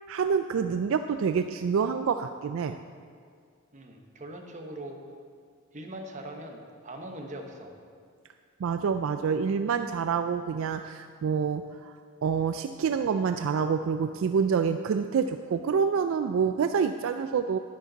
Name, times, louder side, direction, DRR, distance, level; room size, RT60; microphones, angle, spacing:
voice 1, 0.1-2.8 8.6-11.9 12.2-17.6, right 6 dB, 70° right, 9 dB, 0.3 m, -27 dB
voice 2, 3.7-5.0 5.7-7.8, right 1 dB, 35° right, 3 dB, 1.1 m, -41 dB
11.0 x 10.5 x 4.0 m, 2.1 s
head